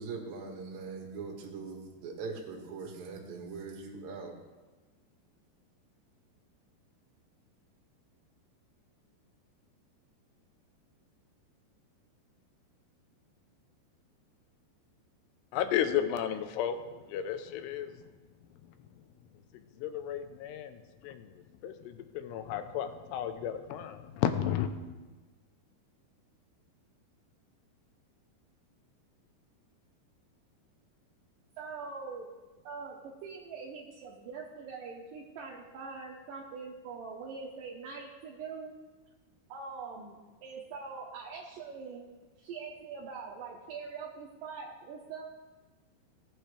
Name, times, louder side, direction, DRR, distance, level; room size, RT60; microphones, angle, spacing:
voice 1, 0.0-4.3, right 4 dB, 55° right, 0 dB, 2.6 m, -41 dB
voice 2, 15.5-16.8 17.1-17.9 19.8-20.8 21.0-21.3 21.6-24.7, left 10 dB, 85° left, 8 dB, 2.8 m, -33 dB
voice 3, 31.6-32.3 32.6-38.8 39.5-42.1 42.4-45.2, right 5 dB, 70° right, -2 dB, 2.2 m, -43 dB
18.0 x 8.7 x 3.3 m, 1.3 s
omnidirectional pair, 4.9 m